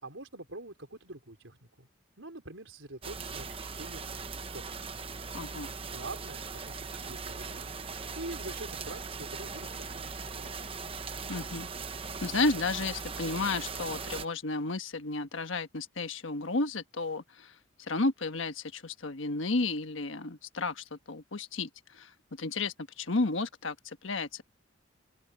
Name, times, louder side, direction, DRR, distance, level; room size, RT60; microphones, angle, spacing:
voice 1, 0.0-1.9 2.2-4.1 4.4-4.6 5.9-7.7 7.9-10.6, right 2 dB, 80° right, 4.3 m, -45 dB
sound 1, 3.0-14.3, right 4 dB, 30° right, 0.9 m, -39 dB
voice 2, 5.3-5.7 11.3-11.7 12.2-22.1 22.4-24.4, left 3 dB, 80° left, 1.3 m, -32 dB
open air
head